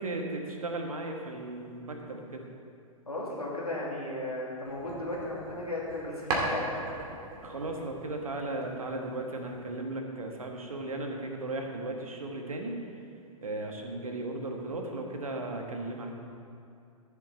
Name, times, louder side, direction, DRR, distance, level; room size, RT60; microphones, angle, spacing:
voice 1, 0.0-2.4 7.4-12.8 13.4-16.1, right 2 dB, 70° right, 2 dB, 1.6 m, -36 dB
voice 2, 3.1-6.7 15.2-15.4, left 1 dB, 85° left, -5 dB, 3.0 m, -35 dB
sound 1, 4.6-6.0 6.3-8.9, right 2 dB, 35° right, 2.3 m, -36 dB
14.5 x 7.4 x 4.2 m, 2.5 s
figure-of-eight pair, 110°, 19 cm